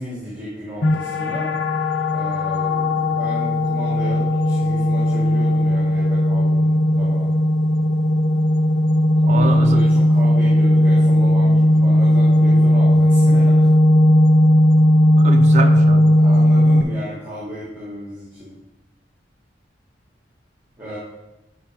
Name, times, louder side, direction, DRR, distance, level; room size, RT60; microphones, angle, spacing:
voice 1, 0.0-1.5 2.1-7.3 9.2-13.7 16.2-18.6 20.8-21.0, equal, 10° right, -9 dB, 2.8 m, -34 dB
sound 1, 0.8-16.8, left 1 dB, 70° left, 0.8 m, -16 dB
voice 2, 9.3-9.8 15.2-16.2, right 2 dB, 40° right, 5 dB, 0.8 m, -24 dB
12.0 x 5.1 x 3.6 m, 0.93 s
head